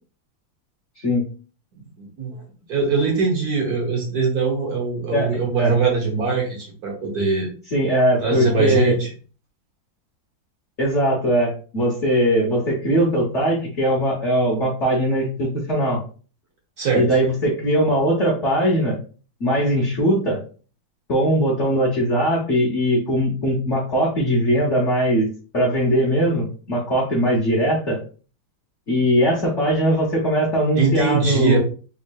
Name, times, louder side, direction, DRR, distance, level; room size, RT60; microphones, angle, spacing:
voice 1, 1.0-1.3 5.1-5.8 7.7-9.0 10.8-16.0 16.9-19.0 19.4-20.4 21.1-25.3 25.5-28.0 28.9-31.6, equal, 50° left, -4 dB, 0.9 m, -20 dB
voice 2, 2.0-2.4 2.7-7.5 8.2-9.1 16.8-17.0 30.7-31.6, right 4 dB, 60° right, -1 dB, 1.2 m, -22 dB
3.7 x 2.9 x 2.3 m, 0.38 s
omnidirectional pair, 2.2 m